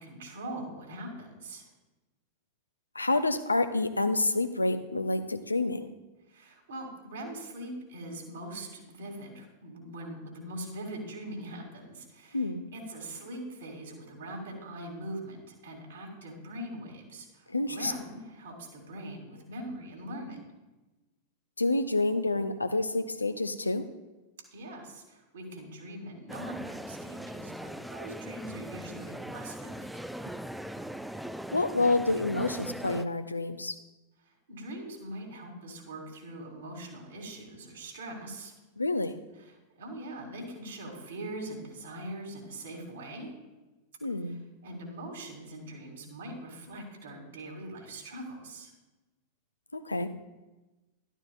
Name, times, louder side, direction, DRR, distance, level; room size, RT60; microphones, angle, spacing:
voice 1, 0.0-1.7 6.3-20.4 24.5-30.0 34.2-38.5 39.4-43.3 44.2-48.7, right 1 dB, 65° right, 1 dB, 2.5 m, -42 dB
voice 2, 2.9-5.9 12.3-12.6 17.5-17.9 21.6-23.9 31.5-33.8 38.8-39.1 44.0-44.4 49.7-50.1, left 2 dB, 80° left, 10 dB, 0.5 m, -28 dB
sound 1, 26.3-33.1, equal, ahead, 0.4 m, -40 dB
12.0 x 12.0 x 2.4 m, 1.1 s
figure-of-eight pair, 90°, 0 cm